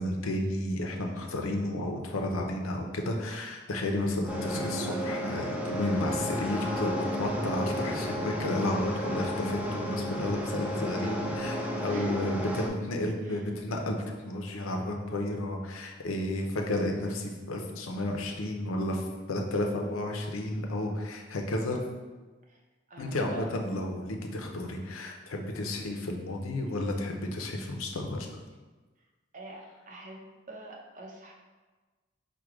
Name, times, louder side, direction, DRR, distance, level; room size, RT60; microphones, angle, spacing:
voice 1, 0.0-11.6 11.8-21.8 23.0-28.3, left 1 dB, 90° left, 2 dB, 0.6 m, -32 dB
sound 1, 4.3-12.7, equal, 5° right, 0.4 m, -33 dB
voice 2, 11.9-12.3 13.3-13.4 15.9-16.0 22.5-22.6 22.9-23.5 29.3-31.3, equal, 40° right, -1 dB, 0.7 m, -44 dB
4.7 x 2.2 x 4.7 m, 1.3 s
head